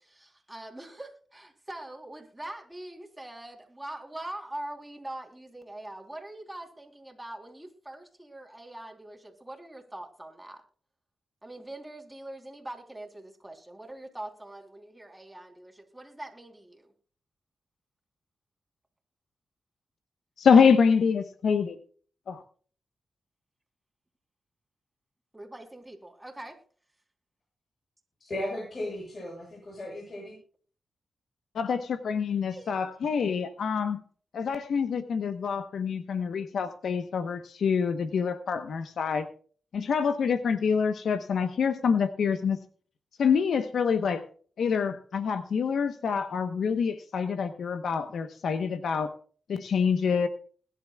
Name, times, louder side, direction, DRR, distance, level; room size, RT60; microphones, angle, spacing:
voice 1, 0.1-10.6 11.4-16.9 25.3-26.6 32.5-32.8, right 1 dB, 10° right, 3 dB, 3.6 m, -43 dB
voice 2, 20.4-21.8 22.3-22.4 31.5-34.0 34.3-39.3 39.7-42.6 43.2-44.2 44.6-49.1 49.5-50.3, left 6 dB, 80° left, 9 dB, 1.0 m, -26 dB
voice 3, 28.2-30.4, left 1 dB, 45° left, -2 dB, 7.6 m, -36 dB
21.0 x 11.5 x 2.4 m, 0.43 s
cardioid pair, 70°, 0 cm